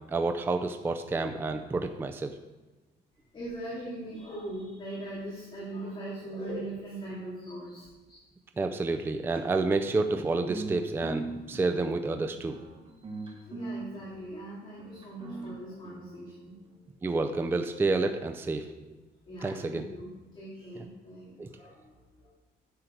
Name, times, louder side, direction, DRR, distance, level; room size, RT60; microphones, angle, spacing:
voice 1, 0.1-2.3 8.6-12.6 17.0-18.7 19.4-19.9 21.4-21.5, right 3 dB, 10° right, 7 dB, 0.4 m, -29 dB
voice 2, 3.3-8.2 13.1-16.5 19.3-22.3, right 1 dB, 25° left, -7 dB, 2.6 m, -40 dB
sound 1, 9.3-16.8, right 3 dB, 25° right, 1.5 m, -42 dB
10.0 x 7.4 x 4.5 m, 1.2 s
cardioid pair, 160°, 19 cm